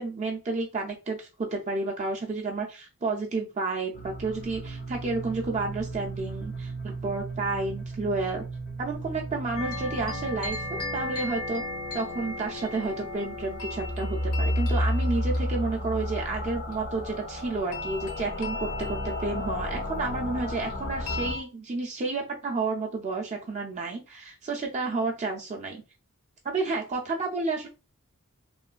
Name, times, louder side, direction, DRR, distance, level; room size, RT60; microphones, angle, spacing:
voice 1, 0.0-8.4 8.8-11.6 11.9-25.8 26.4-27.7, right 3 dB, 30° right, 0 dB, 0.4 m, -31 dB
sound 1, 3.9-21.3, equal, 40° left, 0.6 m, -33 dB
sound 2, 9.6-21.4, left 2 dB, 70° left, 1.2 m, -38 dB
3.1 x 2.2 x 2.3 m, 0.30 s
head